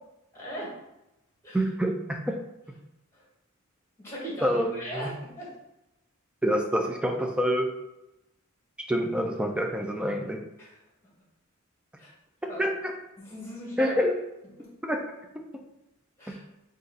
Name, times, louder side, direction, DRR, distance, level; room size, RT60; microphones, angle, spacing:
voice 1, 0.3-0.8 1.4-1.6 3.1-3.3 4.0-5.5 10.6-10.8 12.0-12.1 12.5-12.7 13.2-14.0 14.6-14.7 16.2-16.4, equal, 10° left, -5 dB, 1.4 m, -38 dB
voice 2, 1.5-2.4 4.4-5.1 6.4-7.7 8.9-10.4 12.6-12.9 13.8-14.1 14.8-15.0 16.3-16.4, equal, 5° right, 2 dB, 0.4 m, -27 dB
4.1 x 2.5 x 3.9 m, 0.91 s
head